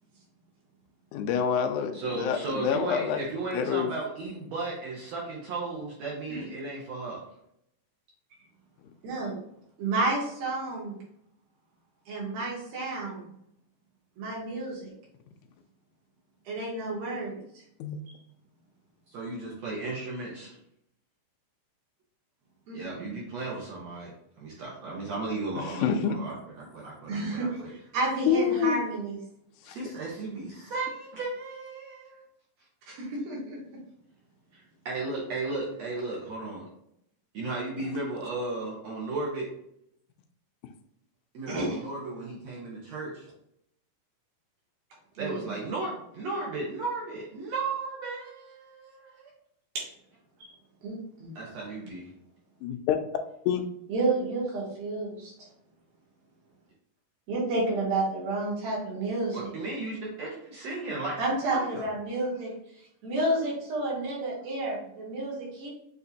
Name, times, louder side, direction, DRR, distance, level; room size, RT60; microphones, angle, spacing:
voice 1, 1.1-3.2 3.5-3.9 17.8-18.0 25.6-26.2 28.3-28.8 29.7-29.8 52.6-53.0 53.5-53.6, left 8 dB, 85° left, 4 dB, 1.8 m, -27 dB
voice 2, 1.9-7.2 19.1-20.5 22.7-24.1 24.4-27.7 29.6-32.2 34.5-36.6 37.3-39.5 41.3-43.3 45.2-49.3 51.3-52.1 59.3-61.2 61.5-61.8, right 3 dB, 65° right, -5 dB, 1.7 m, -35 dB
voice 3, 9.0-9.3 9.8-11.0 12.1-13.3 14.2-14.9 16.5-17.4 18.1-18.2 22.7-23.1 27.1-29.2 32.9-33.6 41.5-41.8 45.1-45.4 49.7-49.9 50.4-50.5 50.8-51.3 53.9-55.5 57.3-59.6 61.2-62.5 63.0-65.7, right 2 dB, 85° right, -5 dB, 3.4 m, -31 dB
6.8 x 2.8 x 2.7 m, 0.75 s
omnidirectional pair, 4.1 m